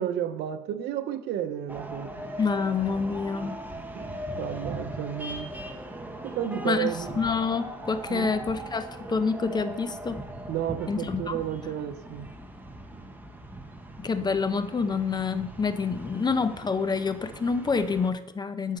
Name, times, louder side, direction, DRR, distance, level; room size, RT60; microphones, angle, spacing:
voice 1, 0.0-2.1 3.9-5.5 6.2-7.2 8.1-8.3 10.5-12.3, right 10 dB, 75° right, 11 dB, 0.8 m, -32 dB
sound 1, 1.7-18.1, right 1 dB, 10° right, 1.2 m, -40 dB
voice 2, 2.4-3.6 6.6-10.2 10.9-11.4 14.0-18.8, left 5 dB, 25° left, 11 dB, 0.7 m, -27 dB
11.0 x 5.7 x 5.5 m, 0.96 s
cardioid pair, 110°, 17 cm